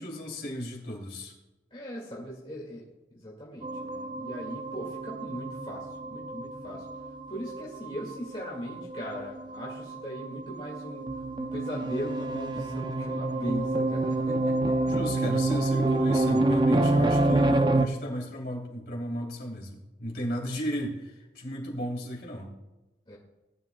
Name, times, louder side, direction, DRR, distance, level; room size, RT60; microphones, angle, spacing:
voice 1, 0.0-1.3 14.8-22.5, equal, 55° left, -1 dB, 3.2 m, -35 dB
voice 2, 1.7-6.9 7.3-14.8 23.1-23.2, equal, 30° left, -4 dB, 2.1 m, -39 dB
sound 1, 3.6-17.9, right 2 dB, 25° right, 0.5 m, -28 dB
19.0 x 11.0 x 2.3 m, 1.1 s
head